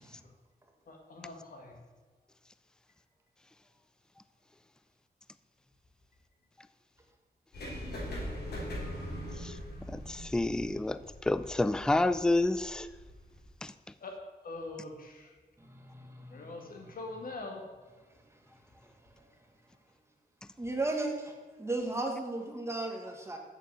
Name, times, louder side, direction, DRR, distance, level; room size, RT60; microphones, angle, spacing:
voice 1, 0.9-1.8 14.0-15.3 16.3-17.7, left 2 dB, 60° left, 2 dB, 1.9 m, -43 dB
sound 1, 7.5-13.5, equal, 90° left, 3.6 m, -41 dB
voice 2, 9.9-12.9 13.6-13.7, left 2 dB, 5° left, 13 dB, 0.3 m, -29 dB
voice 3, 20.6-21.3 21.6-23.4, right 2 dB, 15° right, 2 dB, 1.3 m, -34 dB
8.1 x 7.0 x 7.5 m, 1.4 s
wide cardioid pair, 165°, 16 cm